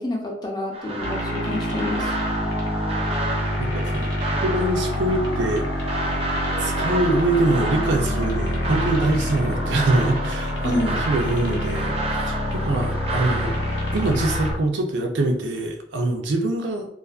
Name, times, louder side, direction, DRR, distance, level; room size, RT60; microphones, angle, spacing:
voice 1, 0.0-2.2 10.6-11.0, left 2 dB, 25° left, -1 dB, 0.5 m, -28 dB
sound 1, 0.7-14.5, right 2 dB, 35° right, 0.5 m, -31 dB
sound 2, 1.0-14.6, left 1 dB, 85° left, 0.7 m, -26 dB
voice 2, 3.6-4.1 4.4-6.0 6.6-12.0 12.3-13.6 13.9-16.9, right 2 dB, 90° right, 3 dB, 0.5 m, -24 dB
2.4 x 2.4 x 2.3 m, 0.70 s
head